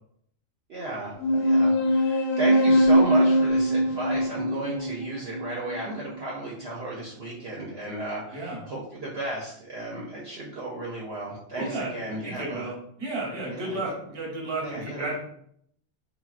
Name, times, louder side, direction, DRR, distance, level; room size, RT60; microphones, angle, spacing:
voice 1, 0.7-12.7 13.5-13.9 14.6-15.1, right 2 dB, 60° right, -4 dB, 0.7 m, -34 dB
sound 1, 1.2-6.2, equal, 60° left, 0.6 m, -22 dB
voice 2, 11.6-11.9 12.2-15.1, right 2 dB, 25° right, -3 dB, 0.7 m, -33 dB
3.4 x 2.2 x 2.4 m, 0.69 s
omnidirectional pair, 1.4 m